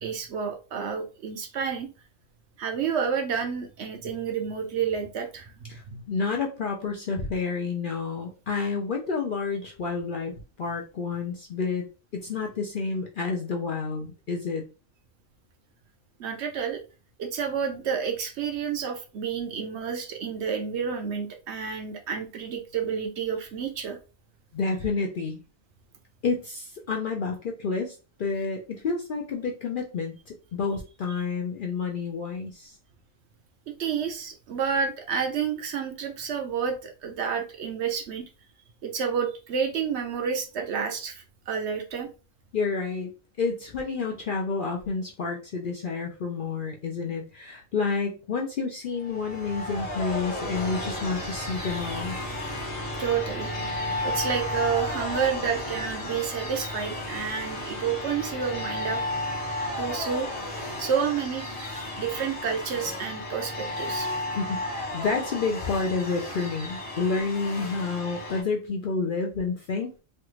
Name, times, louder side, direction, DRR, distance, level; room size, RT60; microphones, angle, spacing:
voice 1, 0.0-1.9 2.6-5.5 5.9-6.0 16.2-16.8 17.2-24.0 33.7-38.2 38.8-42.1 52.7-53.5 54.0-59.0 59.4-61.5 62.0-64.1, right 6 dB, 65° right, 4 dB, 0.8 m, -30 dB
voice 2, 5.7-11.9 12.1-14.6 24.5-25.4 26.2-32.8 42.5-43.1 43.4-52.2 64.3-69.9, left 4 dB, 60° left, 1 dB, 0.6 m, -29 dB
sound 1, 49.0-68.4, left 1 dB, 30° left, 0.9 m, -33 dB
3.2 x 2.4 x 3.0 m, 0.33 s
omnidirectional pair, 1.3 m